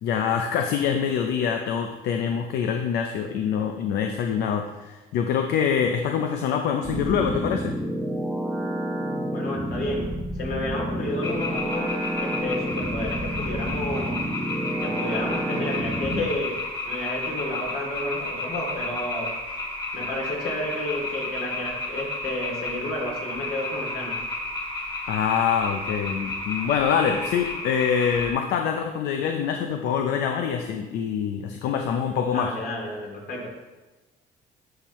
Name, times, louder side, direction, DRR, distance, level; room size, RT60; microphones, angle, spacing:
voice 1, 0.0-7.7 25.1-32.5, left 7 dB, 80° left, 5 dB, 0.6 m, -25 dB
sound 1, 6.8-16.2, right 1 dB, 5° left, 1.2 m, -29 dB
voice 2, 9.3-14.3 14.8-16.6 16.8-19.3 19.9-24.2 32.3-33.5, left 1 dB, 65° left, -2 dB, 2.7 m, -31 dB
sound 2, 11.2-28.3, left 2 dB, 30° left, 2.6 m, -32 dB
11.0 x 5.8 x 3.1 m, 1.1 s
cardioid pair, 110°, 17 cm